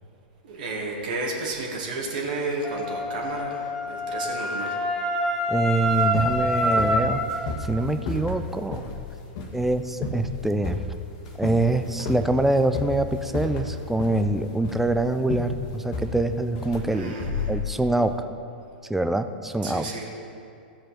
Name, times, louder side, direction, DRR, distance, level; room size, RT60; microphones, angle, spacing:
voice 1, 0.4-4.7 16.9-17.5 19.6-20.1, right 3 dB, 60° right, -1 dB, 1.7 m, -32 dB
Wind instrument woodwind instrument, 2.6-7.3, equal, 10° left, 2.5 m, -26 dB
voice 2, 5.5-7.2 7.6-8.8 9.5-10.8 11.4-17.1 17.5-18.1 18.9-19.9, right 2 dB, 5° right, 9 dB, 0.5 m, -24 dB
sound 1, 5.9-18.1, left 3 dB, 50° left, 1.5 m, -32 dB
14.5 x 7.5 x 4.3 m, 2.6 s
figure-of-eight pair, 95°, 5 cm